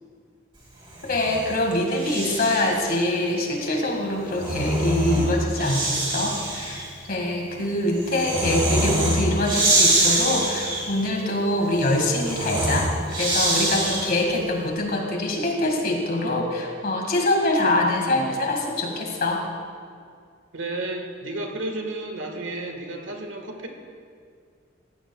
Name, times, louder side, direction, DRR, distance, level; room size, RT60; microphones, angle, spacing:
Breathing, 0.8-2.8 4.1-14.3, right 1 dB, 25° right, 3.2 m, -25 dB
voice 1, 1.1-19.4, left 1 dB, 50° left, 1 dB, 1.9 m, -24 dB
voice 2, 20.5-23.7, right 2 dB, 75° right, 3 dB, 1.6 m, -32 dB
17.0 x 14.0 x 2.3 m, 2.2 s
head